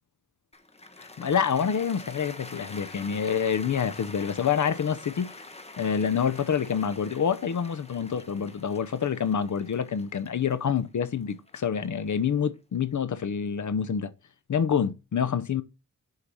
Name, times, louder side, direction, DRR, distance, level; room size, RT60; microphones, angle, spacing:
Cheering / Applause, 0.5-12.8, left 2 dB, 20° left, 1.2 m, -46 dB
voice 1, 1.0-5.5 5.8-14.1 14.5-15.6, left 7 dB, 65° left, 0.8 m, -27 dB
6.6 x 5.7 x 6.1 m
wide cardioid pair, 110°, 32 cm